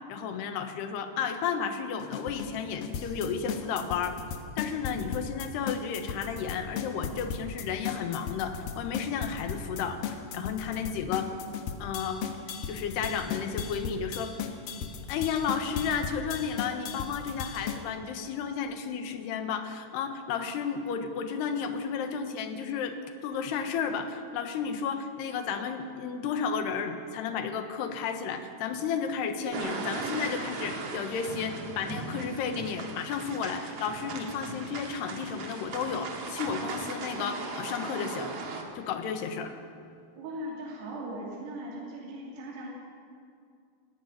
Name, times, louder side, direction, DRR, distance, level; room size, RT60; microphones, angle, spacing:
voice 1, 0.1-4.2 4.6-11.3 11.8-12.2 12.7-14.3 15.1-23.0 23.2-38.3 38.8-39.5, left 6 dB, 85° left, 7 dB, 3.5 m, -32 dB
sound 1, 2.0-17.8, left 7 dB, 70° left, 2.9 m, -36 dB
sound 2, 29.5-38.6, right 3 dB, 45° right, 2.6 m, -38 dB
voice 2, 40.2-42.7, right 1 dB, 80° right, -3 dB, 4.9 m, -39 dB
17.5 x 17.5 x 9.9 m, 2.4 s
omnidirectional pair, 4.6 m